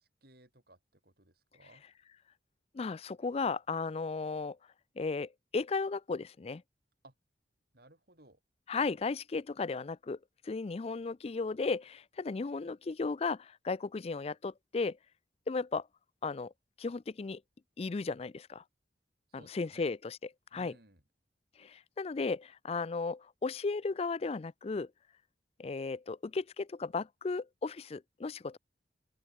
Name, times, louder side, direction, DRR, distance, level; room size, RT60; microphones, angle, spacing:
voice 1, 0.0-1.8 7.0-7.1 7.7-8.4 19.3-19.9 20.5-21.0, right 1 dB, 60° right, 7.0 m, -60 dB
voice 2, 2.7-4.6 5.0-6.6 8.7-10.2 10.4-15.0 15.5-15.9 16.2-16.5 16.8-17.4 17.8-18.6 19.3-20.2 20.5-20.8 21.6-24.9 25.6-28.6, left 4 dB, 35° left, 0.4 m, -35 dB
open air
head